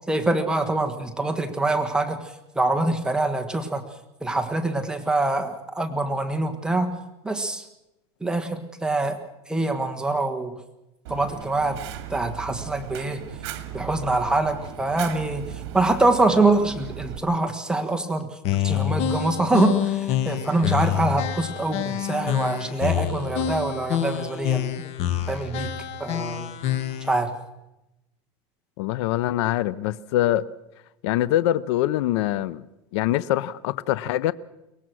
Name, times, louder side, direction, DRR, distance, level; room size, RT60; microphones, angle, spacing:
voice 1, 0.1-2.2 2.5-3.8 4.2-6.9 7.2-7.7 8.2-9.2 9.5-10.5 11.1-11.8 12.1-13.2 13.7-15.5 15.7-18.4 18.6-24.9 25.3-25.7 26.0-26.5 27.0-27.3, right 2 dB, 5° right, 1.4 m, -24 dB
Fire, 11.0-17.2, right 11 dB, 75° right, 2.1 m, -37 dB
sound 1, 18.4-27.2, left 10 dB, 50° left, 2.1 m, -27 dB
voice 2, 28.8-30.5 31.0-32.6 32.9-34.3, left 14 dB, 80° left, 0.6 m, -24 dB
23.0 x 19.0 x 6.2 m
supercardioid pair, 145°, 14 cm